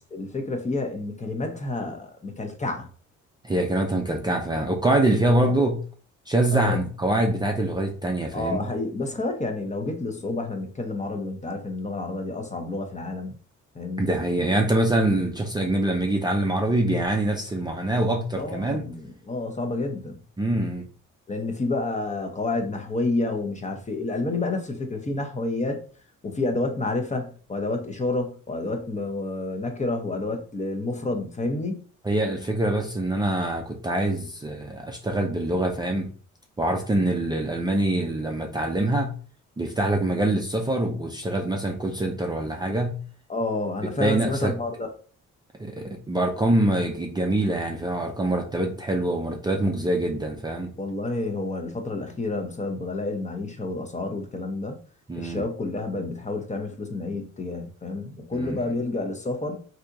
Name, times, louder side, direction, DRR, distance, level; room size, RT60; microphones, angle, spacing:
voice 1, 0.1-2.9 5.4-5.6 6.5-6.8 8.3-13.3 13.7-14.1 18.4-20.2 21.3-25.8 26.2-31.8 43.3-44.9 50.8-54.8 55.2-59.6, left 2 dB, 25° left, 0.7 m, -29 dB
voice 2, 3.4-5.8 6.3-8.7 14.0-18.8 20.4-20.8 32.0-36.1 36.6-39.1 39.6-43.0 43.8-44.5 45.6-50.7 55.1-55.4 58.3-58.6, right 1 dB, 15° right, 0.5 m, -24 dB
3.4 x 2.8 x 2.5 m
cardioid pair, 90°, 30 cm